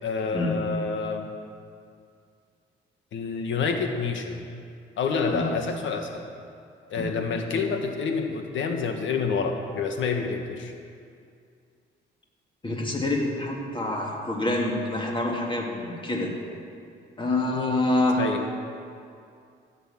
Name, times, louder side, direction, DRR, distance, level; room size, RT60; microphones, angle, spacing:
voice 1, 0.0-1.3 3.1-4.4 5.0-6.2 6.9-10.7 17.5-17.8 18.2-18.4, left 5 dB, 75° left, 4 dB, 1.5 m, -28 dB
voice 2, 12.6-16.3 17.2-18.2, left 2 dB, 25° left, -1 dB, 2.6 m, -26 dB
14.0 x 7.0 x 7.3 m, 2.4 s
cardioid pair, 90°, 20 cm